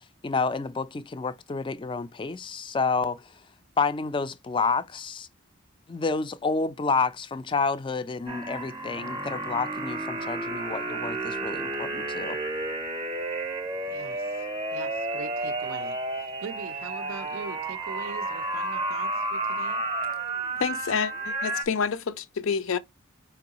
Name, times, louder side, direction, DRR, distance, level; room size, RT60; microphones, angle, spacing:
voice 1, 0.2-3.3 3.8-5.3 5.9-12.4, left 4 dB, 25° left, 0.3 m, -29 dB
sound 1, 8.3-21.6, right 2 dB, 25° right, 0.6 m, -31 dB
voice 2, 13.9-19.9, right 6 dB, 75° right, 0.4 m, -42 dB
voice 3, 20.6-22.8, left 6 dB, 75° left, 0.5 m, -28 dB
4.5 x 3.0 x 2.8 m
head